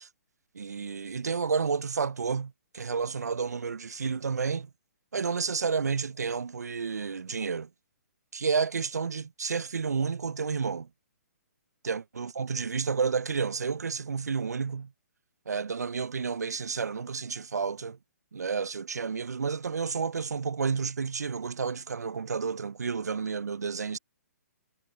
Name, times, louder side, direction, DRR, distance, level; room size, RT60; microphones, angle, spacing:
voice 1, 0.5-4.7 5.1-7.7 8.3-10.9 11.8-14.9 15.5-18.0 18.3-24.0, right 5 dB, 85° right, 0.5 m, -31 dB
hypercardioid pair, 135°, 9 cm